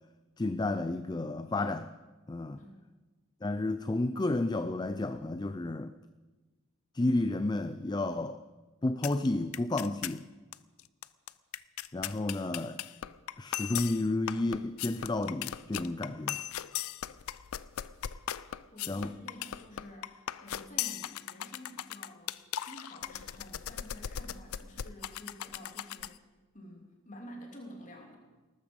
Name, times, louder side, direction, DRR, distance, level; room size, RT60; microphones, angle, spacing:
voice 1, 0.4-1.9 2.3-2.6 3.4-5.9 6.9-8.4 8.8-10.3 11.9-12.8 13.4-16.4 18.9-19.1, left 2 dB, 20° left, 11 dB, 0.4 m, -31 dB
sound 1, 9.0-9.3 9.5-10.2 10.5-10.6 10.8-26.2, left 11 dB, 90° left, 0.5 m, -38 dB
voice 2, 18.7-26.2 26.5-28.2, equal, 35° left, 1 dB, 3.0 m, -50 dB
19.0 x 13.0 x 5.3 m, 1.2 s
head